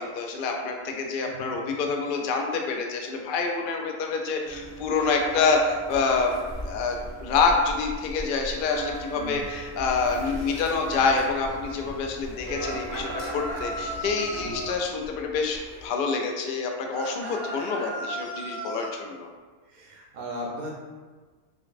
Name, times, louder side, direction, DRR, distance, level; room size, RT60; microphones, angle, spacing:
voice 1, 0.0-6.3 6.6-19.3, left 4 dB, 85° left, 2 dB, 0.4 m, -27 dB
sound 1, 4.4-14.6, right 2 dB, 20° left, 0.6 m, -40 dB
sound 2, 5.9-15.9, left 1 dB, 50° left, 0.8 m, -41 dB
sound 3, 12.6-14.8 16.9-18.9, right 1 dB, 85° right, 1.1 m, -35 dB
voice 2, 19.7-20.7, equal, 50° right, -3 dB, 0.5 m, -37 dB
5.7 x 2.0 x 2.4 m, 1.4 s
omnidirectional pair, 1.5 m